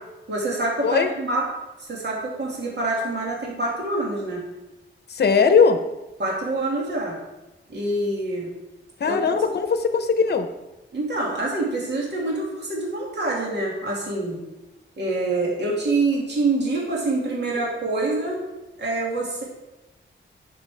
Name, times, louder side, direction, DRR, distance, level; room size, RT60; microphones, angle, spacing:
voice 1, 0.3-1.5 1.8-4.4 6.2-7.2 7.7-8.5 9.0-9.3 10.9-14.4 15.0-18.4 18.8-19.4, right 2 dB, 60° right, -3 dB, 2.2 m, -26 dB
voice 2, 5.1-5.8 9.0-10.5, left 5 dB, 55° left, 8 dB, 0.8 m, -19 dB
11.5 x 6.1 x 3.4 m, 1.0 s
wide cardioid pair, 125°, 20 cm